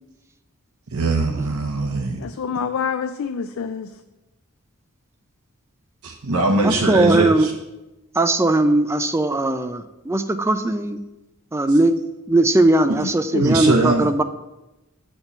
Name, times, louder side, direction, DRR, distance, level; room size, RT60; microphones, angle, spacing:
voice 1, 0.9-2.2 6.0-7.5 13.4-14.1, right 2 dB, 85° right, 1 dB, 0.8 m, -21 dB
voice 2, 2.2-3.9 13.0-13.5, left 6 dB, 65° left, 8 dB, 0.4 m, -27 dB
voice 3, 6.6-7.5 8.2-11.0 11.5-11.9 12.3-14.2, right 2 dB, 10° right, 9 dB, 0.4 m, -19 dB
7.2 x 4.4 x 6.7 m, 1.0 s
head